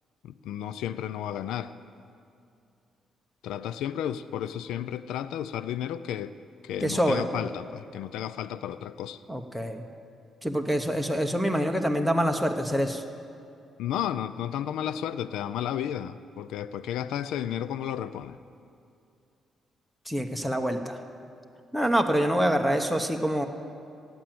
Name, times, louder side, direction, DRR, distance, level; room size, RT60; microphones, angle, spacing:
voice 1, 0.2-1.7 3.4-6.4 6.6-9.2 13.8-18.4, left 10 dB, 90° left, 14 dB, 0.4 m, -33 dB
voice 2, 6.8-7.2 9.3-9.8 10.4-13.0 20.1-21.0 21.7-23.5, equal, ahead, 6 dB, 1.0 m, -26 dB
16.5 x 8.9 x 7.7 m, 2.5 s
cardioid pair, 90°, 0 cm